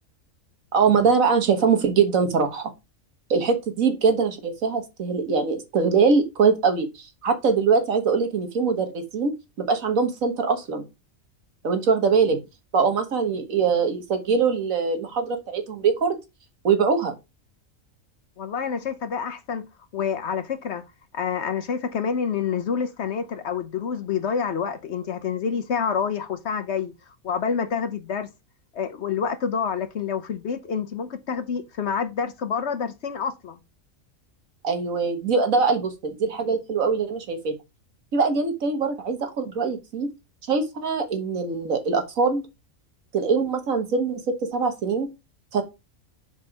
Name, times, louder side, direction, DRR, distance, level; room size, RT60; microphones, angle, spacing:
voice 1, 0.7-2.7 3.3-9.3 9.6-10.9 11.6-12.4 12.7-16.2 16.6-17.1 34.6-37.5 38.1-40.1 40.5-42.4 43.1-45.1 45.5-45.6, right 5 dB, 70° right, 1.8 m, -22 dB
voice 2, 18.4-19.7 19.9-20.8 21.1-26.9 27.2-28.3 28.7-33.6, left 6 dB, 60° left, 1.0 m, -27 dB
4.9 x 4.8 x 5.8 m
omnidirectional pair, 1.4 m